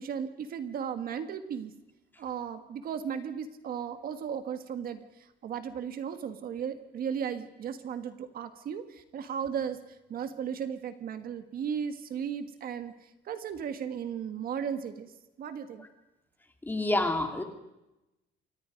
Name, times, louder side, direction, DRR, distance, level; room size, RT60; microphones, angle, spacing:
voice 1, 0.0-1.7 2.2-15.1 15.4-15.9, right 7 dB, 50° right, 9 dB, 1.5 m, -36 dB
voice 2, 16.7-17.4, left 2 dB, 10° left, 5 dB, 2.5 m, -27 dB
28.5 x 24.5 x 5.2 m, 0.95 s
cardioid pair, 180°, 19 cm